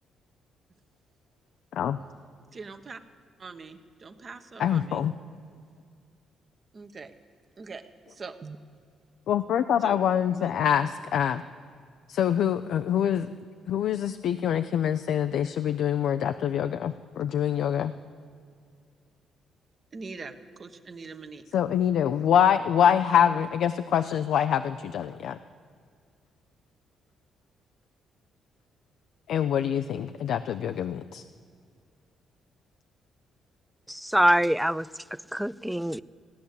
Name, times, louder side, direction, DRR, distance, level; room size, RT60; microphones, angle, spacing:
voice 1, 2.5-3.0 3.4-5.0 6.7-7.1 7.6-8.6 9.8-10.0 10.3-10.5 19.9-21.4, right 4 dB, 40° right, 8 dB, 1.1 m, -42 dB
voice 2, 4.6-5.1 9.3-11.4 12.1-13.3 13.7-17.9 21.5-25.4 29.3-31.2, left 9 dB, 75° left, 10 dB, 0.5 m, -25 dB
voice 3, 33.9-36.0, equal, ahead, 18 dB, 0.4 m, -25 dB
16.0 x 10.5 x 8.2 m, 2.2 s
cardioid pair, 90°, 0 cm